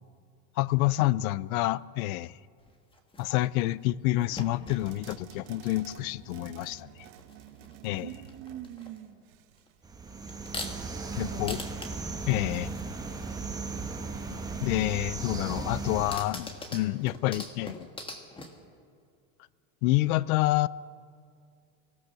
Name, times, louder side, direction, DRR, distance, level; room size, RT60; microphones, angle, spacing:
voice 1, 0.6-2.3 3.2-6.9 7.8-8.1 11.2-11.6 12.3-12.7 14.3-17.9 19.8-20.7, left 17 dB, 85° left, 0.6 m, -28 dB
sound 1, 2.6-3.7 4.2-6.6 6.9-8.0 8.3-9.0 9.6-9.7 10.3-11.0 11.5-14.3 15.0-18.7, left 2 dB, 10° left, 1.4 m, -43 dB
sound 2, 4.8-9.8, right 11 dB, 80° right, 1.6 m, -50 dB
voice 2, 7.9-9.2 10.6-11.5, right 11 dB, 40° right, 1.4 m, -44 dB
sound 3, 9.8-16.2, right 3 dB, 10° right, 1.2 m, -36 dB
24.0 x 16.5 x 6.7 m
cardioid pair, 160°, 42 cm